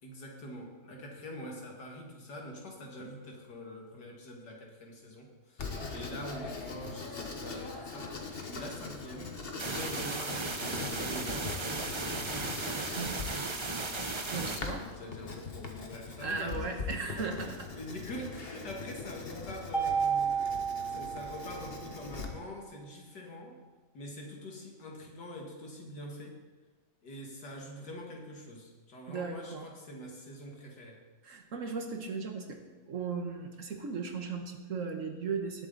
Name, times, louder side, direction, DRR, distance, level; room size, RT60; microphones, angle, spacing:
voice 1, 0.0-11.8 14.2-16.8 17.2-17.3 17.7-23.6 23.9-26.4 27.0-31.0, left 1 dB, 80° left, 0 dB, 2.7 m, -45 dB
Writing, 5.6-22.2, left 4 dB, 40° left, 1.3 m, -42 dB
sound 1, 9.6-14.6, right 3 dB, 35° right, 0.5 m, -35 dB
voice 2, 14.3-14.9 16.2-17.6 29.1-29.7 31.2-32.6 32.9-35.7, right 4 dB, 50° right, 4 dB, 1.4 m, -37 dB
Mallet percussion, 19.7-22.0, right 6 dB, 20° left, 0.7 m, -32 dB
19.0 x 7.7 x 4.0 m, 1.2 s
omnidirectional pair, 1.8 m